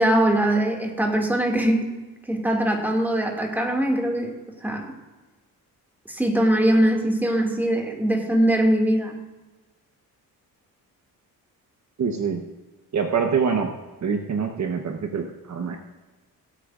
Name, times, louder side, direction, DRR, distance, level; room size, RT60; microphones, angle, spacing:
voice 1, 0.0-1.8 2.3-4.3 4.6-4.9 6.1-9.2, right 1 dB, 5° right, 1 dB, 2.3 m, -21 dB
voice 2, 12.0-12.4 12.9-13.7 14.0-15.8, right 6 dB, 50° right, 3 dB, 1.1 m, -25 dB
22.0 x 8.4 x 2.5 m, 1.2 s
cardioid pair, 85°, 36 cm